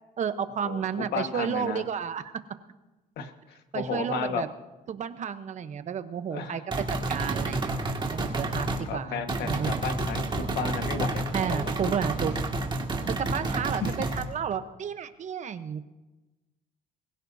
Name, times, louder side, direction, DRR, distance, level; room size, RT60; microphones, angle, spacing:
voice 1, 0.2-2.2 3.7-4.5 4.9-6.6 7.1-7.7 8.1-9.7 11.3-12.3 13.0-15.8, right 8 dB, 45° right, 11 dB, 0.9 m, -31 dB
voice 2, 1.1-1.8 3.2-4.4 6.3-6.6 8.9-11.7 13.8-13.9, left 6 dB, 75° left, 6 dB, 1.5 m, -33 dB
sound 1, 6.7-8.9 9.3-14.3, right 2 dB, 30° right, 2.0 m, -30 dB
22.0 x 16.0 x 2.7 m, 1.1 s
cardioid pair, 110°, 17 cm